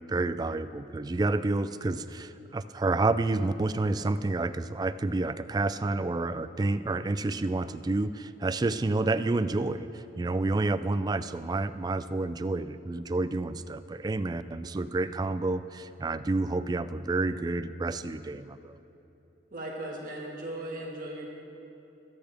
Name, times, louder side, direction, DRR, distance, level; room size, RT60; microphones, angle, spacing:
voice 1, 0.0-18.8, right 2 dB, 20° right, 12 dB, 0.3 m, -29 dB
voice 2, 19.5-21.3, right 1 dB, 50° right, -2 dB, 1.7 m, -37 dB
23.5 x 9.0 x 3.4 m, 3.0 s
head